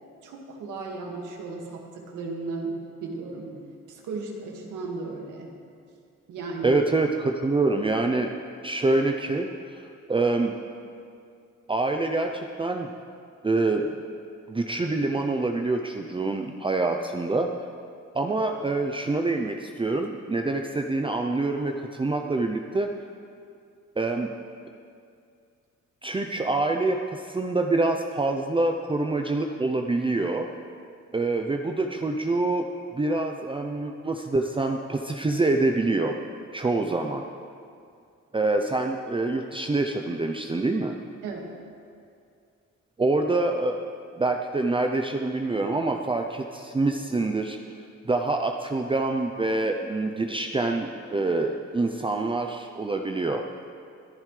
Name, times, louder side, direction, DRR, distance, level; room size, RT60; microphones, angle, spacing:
voice 1, 0.2-5.5 6.3-6.7 41.2-41.5, right 3 dB, 85° right, 0 dB, 2.1 m, -35 dB
voice 2, 6.6-8.3 8.6-10.6 11.7-12.9 13.4-13.9 14.5-17.5 18.1-22.9 24.0-24.3 26.0-30.5 31.1-32.7 32.9-36.1 36.5-37.2 38.3-41.0 43.0-43.8 44.2-47.6 48.1-53.4, right 2 dB, 15° right, 3 dB, 0.7 m, -26 dB
21.5 x 11.0 x 3.4 m, 2.3 s
cardioid pair, 90°, 30 cm